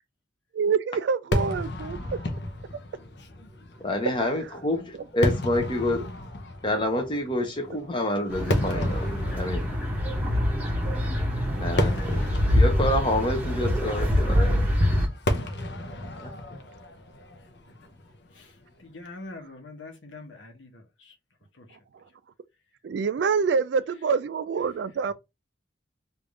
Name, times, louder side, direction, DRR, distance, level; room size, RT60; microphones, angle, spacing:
voice 1, 0.5-2.0 14.0-14.2 22.8-25.1, right 5 dB, 65° right, 0.3 m, -26 dB
Fireworks, 1.3-18.6, left 1 dB, 60° left, 0.7 m, -33 dB
voice 2, 3.8-6.1 6.6-9.1 9.3-9.7 11.6-12.2 12.5-14.7 16.2-16.6, left 1 dB, 25° left, 0.8 m, -28 dB
sound 1, 8.3-15.1, left 1 dB, 10° right, 0.9 m, -25 dB
voice 3, 18.8-21.1 21.6-21.7, left 2 dB, 80° left, 1.1 m, -44 dB
3.4 x 2.6 x 3.2 m
head